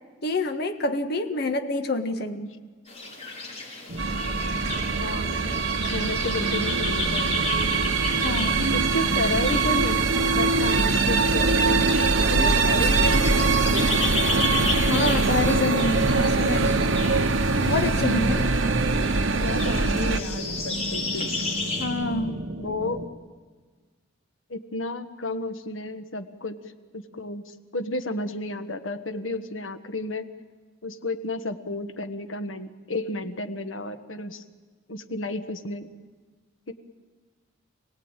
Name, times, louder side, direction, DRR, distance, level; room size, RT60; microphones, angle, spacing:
voice 1, 0.2-2.5 8.2-8.7 14.8-17.0 17.6-18.5 21.8-22.4, left 2 dB, 55° left, 5 dB, 1.7 m, -27 dB
sound 1, 2.9-21.9, left 3 dB, 35° left, 5.3 m, -34 dB
sound 2, 3.9-23.1, right 1 dB, 55° right, 1.4 m, -34 dB
sound 3, 4.0-20.2, right 3 dB, 80° right, 1.1 m, -23 dB
voice 2, 5.0-5.4 5.9-7.5 8.7-11.9 12.3-14.0 19.4-21.3 22.6-23.0 24.5-26.6 26.9-30.3 30.8-34.4 34.9-35.9 36.7-36.8, left 2 dB, 85° left, 8 dB, 1.5 m, -32 dB
27.0 x 18.0 x 9.0 m, 1.5 s
head